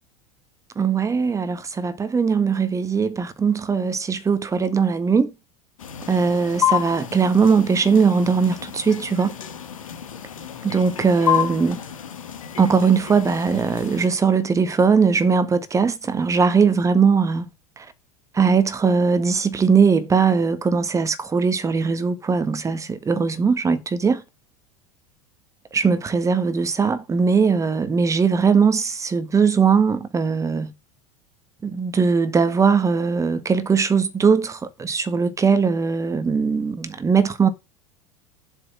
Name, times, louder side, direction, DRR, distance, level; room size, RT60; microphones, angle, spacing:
voice 1, 0.7-5.3 6.1-9.3 10.6-11.8 12.6-17.5 17.8-17.9 18.3-24.2 25.7-30.7 31.6-37.5, right 5 dB, 15° right, 1.6 m, -20 dB
sound 1, 5.8-14.1, left 10 dB, 70° left, 1.4 m, -29 dB
8.0 x 4.9 x 7.4 m
figure-of-eight pair, 80°, 18 cm